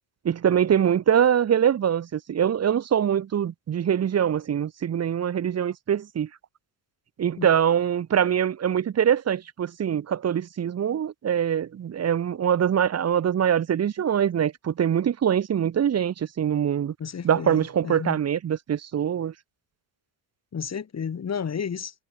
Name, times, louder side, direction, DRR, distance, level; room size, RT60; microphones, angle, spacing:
voice 1, 0.2-6.3 7.2-16.9 17.2-19.3, right 9 dB, 35° right, 1.0 m, -23 dB
voice 2, 17.0-18.2 20.5-21.9, left 7 dB, 35° left, 4.9 m, -32 dB
cardioid pair, 125°, 45 cm